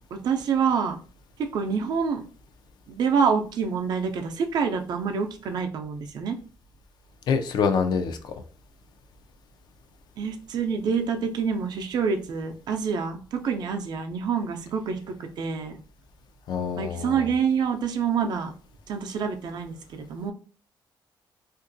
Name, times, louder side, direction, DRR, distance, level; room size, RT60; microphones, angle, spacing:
voice 1, 0.1-1.0 1.4-2.2 2.9-6.4 10.2-15.8 16.8-18.5 18.9-20.3, right 6 dB, 60° right, 5 dB, 0.5 m, -27 dB
voice 2, 7.3-8.3 16.5-17.2, left 6 dB, 65° left, 7 dB, 0.4 m, -25 dB
2.8 x 2.5 x 2.6 m, 0.39 s
cardioid pair, 160°, 8 cm